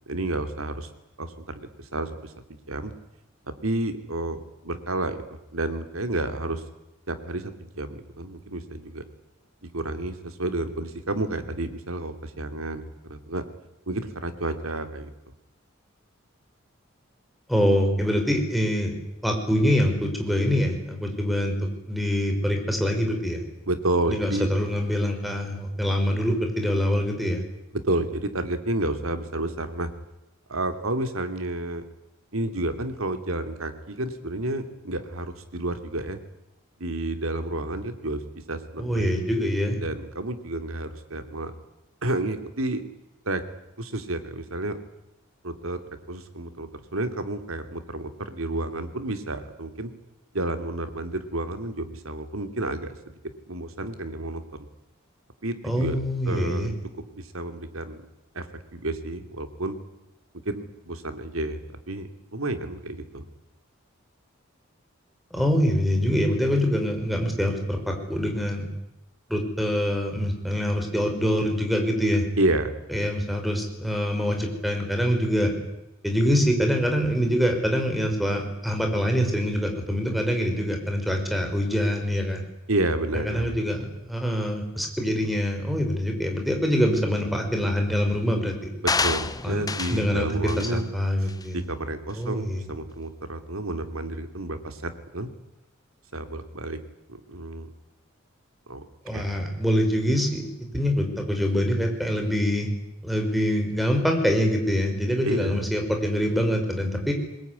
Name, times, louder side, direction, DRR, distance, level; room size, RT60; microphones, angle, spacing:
voice 1, 0.1-0.9 1.2-2.9 3.6-5.2 5.5-6.6 7.1-9.0 9.6-12.8 13.1-13.4 13.9-15.1 23.7-24.5 27.8-29.9 30.5-31.9 32.3-36.2 36.8-38.2 38.5-39.1 39.8-41.5 42.0-42.8 43.2-43.4 43.8-44.8 45.4-45.8 46.1-49.9 50.3-53.1 53.5-54.7 55.4-56.0 56.2-56.7 57.0-58.0 58.3-58.5 58.7-59.8 60.4-63.3 72.4-72.7 82.7-83.5 88.8-90.9 91.2-95.3 96.1-96.8 97.3-97.7 98.7-98.9 99.1-99.2 105.2-105.7, right 2 dB, 90° right, 8 dB, 2.9 m, -30 dB
voice 2, 17.5-19.0 19.2-23.4 24.1-27.4 38.8-39.8 55.6-56.7 65.3-68.7 69.3-72.2 72.9-75.5 76.0-82.4 83.1-88.7 89.4-89.6 89.9-90.3 90.6-91.6 92.2-92.6 99.0-100.5 100.7-102.7 103.0-107.1, equal, ahead, 3 dB, 5.5 m, -25 dB
sound 1, 88.9-90.1 90.5-90.7 91.3-91.4, left 4 dB, 20° left, 0.9 m, -27 dB
23.5 x 21.5 x 9.8 m, 0.94 s
head